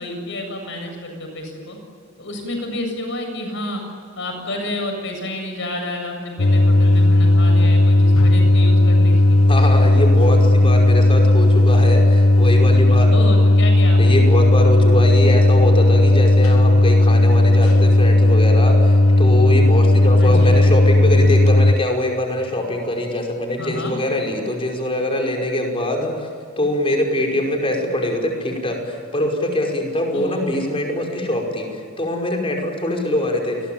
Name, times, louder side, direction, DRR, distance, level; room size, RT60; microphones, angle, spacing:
voice 1, 0.0-1.8 2.2-3.8 4.2-9.4 13.1-14.3 20.2-20.6 23.6-23.9 30.1-30.5, left 1 dB, 60° left, 4 dB, 7.6 m, -29 dB
sound 1, 6.4-21.7, left 2 dB, 85° left, 1.3 m, -14 dB
voice 2, 9.5-13.1 14.0-26.3 26.6-33.7, left 1 dB, 25° left, 1 dB, 5.4 m, -23 dB
28.0 x 22.0 x 9.1 m, 2.2 s
head